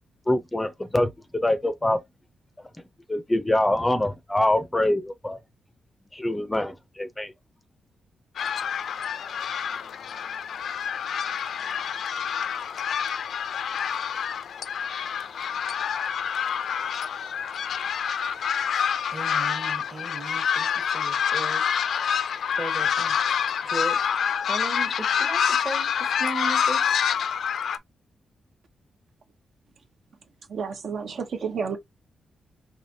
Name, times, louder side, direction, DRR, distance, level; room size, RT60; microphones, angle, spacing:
voice 1, 0.3-2.0 3.1-5.4 6.1-7.3, left 1 dB, 10° left, 0.5 m, -24 dB
sound 1, 8.4-27.8, left 7 dB, 70° left, 0.4 m, -27 dB
voice 2, 19.1-21.6 22.6-23.2 23.6-24.1 24.5-26.9, right 3 dB, 30° right, 1.0 m, -36 dB
voice 3, 30.5-31.8, right 6 dB, 65° right, 0.8 m, -30 dB
4.8 x 2.9 x 2.6 m
cardioid pair, 110°, 0 cm